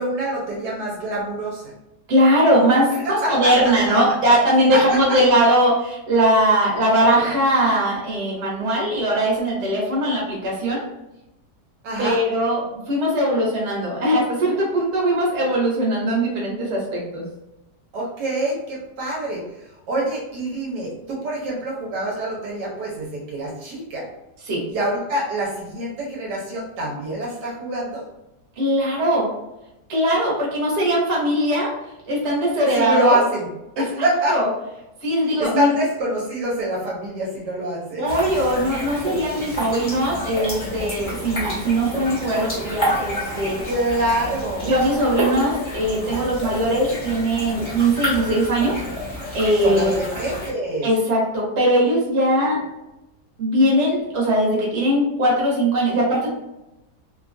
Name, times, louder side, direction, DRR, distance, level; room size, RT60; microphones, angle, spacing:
voice 1, 0.0-1.7 3.0-3.7 4.7-5.2 11.8-12.2 17.9-19.4 19.9-24.1 24.7-28.0 32.7-33.5 33.8-34.4 35.4-38.0 43.7-44.8 49.6-50.9, right 1 dB, 75° right, -3 dB, 1.3 m, -25 dB
voice 2, 2.1-10.8 12.0-17.2 24.5-24.6 28.6-29.3 29.9-31.7 32.1-33.2 33.8-33.9 34.3-34.5 35.0-35.7 38.0-43.6 44.6-48.7 49.3-49.9 50.8-52.6 53.4-56.3, right 1 dB, 45° right, -4 dB, 1.1 m, -20 dB
sound 1, 38.1-50.5, equal, 25° left, 0.7 m, -29 dB
3.1 x 2.2 x 2.5 m, 0.92 s
omnidirectional pair, 1.9 m